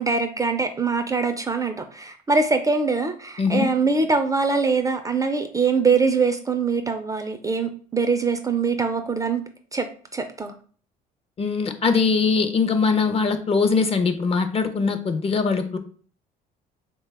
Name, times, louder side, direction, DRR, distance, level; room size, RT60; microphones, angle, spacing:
voice 1, 0.0-9.4 9.7-9.9 10.1-10.5, right 4 dB, 20° right, 0.3 m, -23 dB
voice 2, 3.4-3.7 11.4-15.8, left 4 dB, 35° left, 0.5 m, -21 dB
3.3 x 2.2 x 3.2 m
cardioid pair, 90°, 18 cm